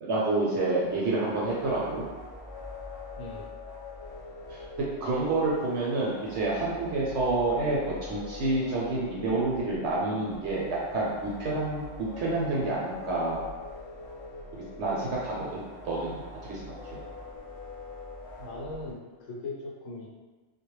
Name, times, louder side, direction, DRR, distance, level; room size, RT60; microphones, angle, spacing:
voice 1, 0.0-2.0 4.5-4.6 5.0-13.5 14.5-15.6 15.8-17.0, right 2 dB, 70° right, -5 dB, 0.8 m, -29 dB
sound 1, 0.6-18.9, left 3 dB, 60° left, 0.3 m, -44 dB
voice 2, 3.2-3.5 18.4-20.1, left 2 dB, 90° left, -2 dB, 1.0 m, -39 dB
2.2 x 2.0 x 3.0 m, 1.3 s
omnidirectional pair, 1.3 m